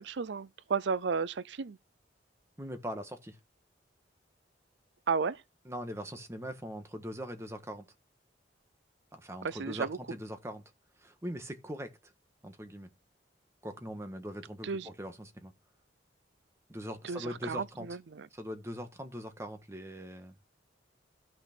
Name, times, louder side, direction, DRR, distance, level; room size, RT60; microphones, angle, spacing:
voice 1, 0.0-1.8 5.1-5.4 9.4-10.0 14.6-14.9 17.0-18.3, right 5 dB, 75° right, 0.5 m, -33 dB
voice 2, 2.6-3.4 5.6-7.8 9.1-10.6 11.0-11.9 12.4-12.9 13.6-15.5 16.7-17.9 18.3-20.3, equal, 15° right, 1.5 m, -41 dB
13.0 x 6.1 x 4.4 m
head